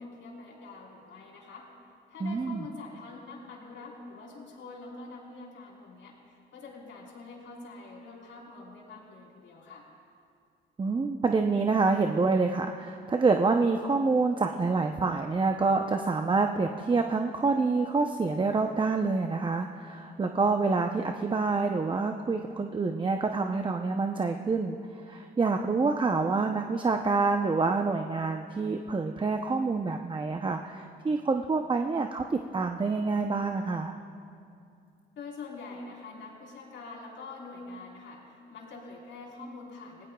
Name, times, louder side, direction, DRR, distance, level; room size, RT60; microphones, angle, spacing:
voice 1, 0.0-1.6 2.1-9.8 35.2-40.1, left 3 dB, 75° left, -2 dB, 4.2 m, -45 dB
voice 2, 2.2-2.6 10.8-24.8 25.1-34.0, right 4 dB, 25° right, 4 dB, 0.7 m, -27 dB
28.0 x 18.5 x 2.3 m, 2.5 s
cardioid pair, 90°, 20 cm